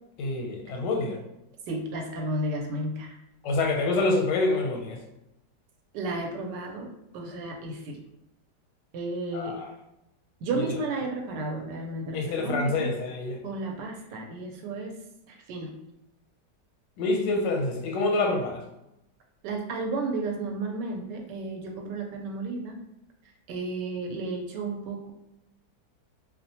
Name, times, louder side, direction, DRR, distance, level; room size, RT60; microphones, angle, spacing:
voice 1, 0.2-1.2 3.4-5.0 9.3-9.6 12.1-13.4 17.0-18.6, left 2 dB, 85° left, 1 dB, 1.3 m, -26 dB
voice 2, 1.7-3.1 5.9-8.0 8.9-9.5 10.4-12.9 13.4-14.9 15.3-15.7 19.4-22.8 23.2-25.1, right 2 dB, 80° right, 1 dB, 1.2 m, -33 dB
2.8 x 2.1 x 2.7 m, 0.87 s
omnidirectional pair, 1.8 m